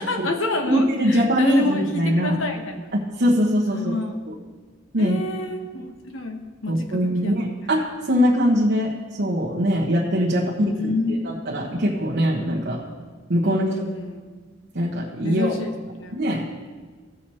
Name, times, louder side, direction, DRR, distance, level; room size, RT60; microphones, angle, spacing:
voice 1, 0.0-2.9 3.7-4.1 5.0-5.9 6.1-7.5 10.3-11.4 13.5-14.2 15.2-15.6 16.0-16.1, left 2 dB, 70° left, 4 dB, 1.2 m, -28 dB
voice 2, 0.7-2.4 2.9-3.9 4.3-4.4 4.9-5.2 6.7-12.8 13.3-13.7 14.7-15.6 16.1-16.5, equal, 60° right, -6 dB, 1.3 m, -22 dB
16.5 x 6.4 x 4.4 m, 1.5 s
head